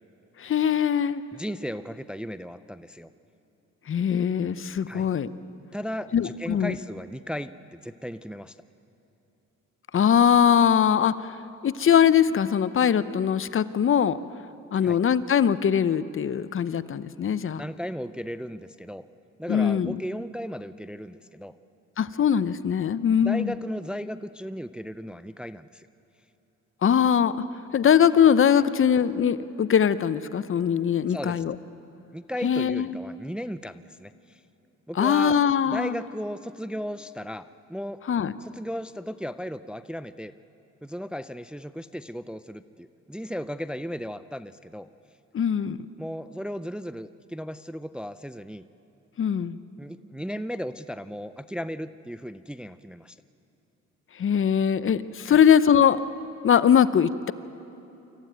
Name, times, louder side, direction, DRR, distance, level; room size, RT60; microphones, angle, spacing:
voice 1, 0.4-1.2 3.9-5.3 6.1-6.8 9.9-11.2 11.6-14.2 14.7-17.6 19.5-20.0 22.0-23.5 26.8-27.3 27.7-31.5 32.4-33.0 35.0-35.9 38.1-38.3 45.3-45.8 49.2-49.6 54.2-56.0 56.4-57.3, left 8 dB, 45° left, 15 dB, 0.8 m, -21 dB
voice 2, 1.3-3.1 4.9-5.1 5.7-8.6 14.8-15.0 17.6-19.0 19.4-21.5 23.2-25.9 31.1-31.4 32.1-34.4 34.9-35.4 35.6-38.0 38.4-40.3 40.8-44.9 46.0-48.7 49.8-53.2 55.3-55.4, equal, 5° right, 13 dB, 0.5 m, -35 dB
25.5 x 14.5 x 9.2 m, 3.0 s
cardioid pair, 90°, 30 cm